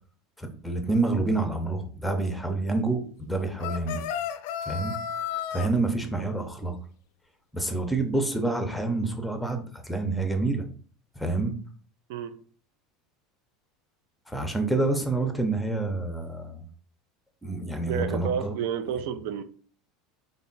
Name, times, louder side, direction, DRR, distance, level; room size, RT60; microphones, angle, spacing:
voice 1, 0.4-4.0 4.7-4.9 5.3-6.8 7.5-10.6 11.2-11.6 14.3-16.6 17.4-18.6, right 2 dB, ahead, 0.6 m, -28 dB
sound 1, 3.6-5.7, left 8 dB, 70° left, 0.3 m, -32 dB
voice 2, 17.9-19.4, right 8 dB, 70° right, 0.4 m, -30 dB
3.4 x 2.1 x 3.9 m
supercardioid pair, 135°, 0 cm